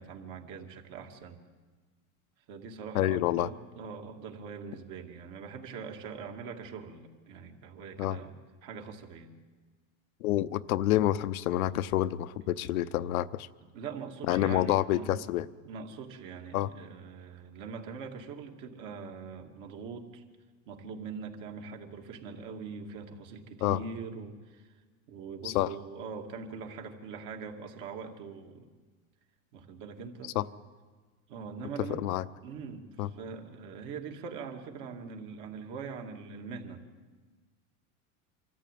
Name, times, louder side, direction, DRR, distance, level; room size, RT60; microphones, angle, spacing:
voice 1, 0.0-1.4 2.5-8.3 8.6-9.3 13.7-15.2 15.6-20.2 20.7-24.8 25.1-28.7 29.5-30.3 31.3-32.0 32.4-36.8, right 5 dB, 50° right, 3 dB, 2.5 m, -42 dB
voice 2, 2.9-3.5 8.0-8.2 10.2-13.5 14.3-15.5 16.5-16.7 23.6-23.8 25.4-25.7 30.3-30.4 31.9-32.2 33.0-33.1, left 14 dB, 85° left, 14 dB, 0.8 m, -28 dB
25.0 x 13.5 x 9.3 m, 1.4 s
supercardioid pair, 125°, 41 cm